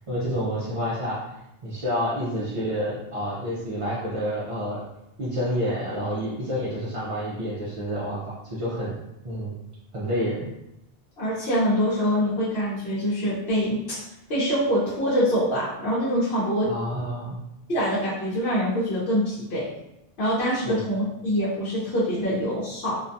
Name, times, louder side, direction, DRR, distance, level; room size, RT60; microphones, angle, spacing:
voice 1, 0.1-1.2 1.6-4.8 5.2-9.0 9.2-9.5 9.9-10.5 16.7-17.4 20.6-20.8, equal, 45° right, -8 dB, 0.4 m, -28 dB
voice 2, 11.2-13.8 14.3-16.7 17.7-19.7 20.2-23.0, equal, 65° left, -9 dB, 1.0 m, -24 dB
2.5 x 2.2 x 2.6 m, 0.85 s
omnidirectional pair, 1.1 m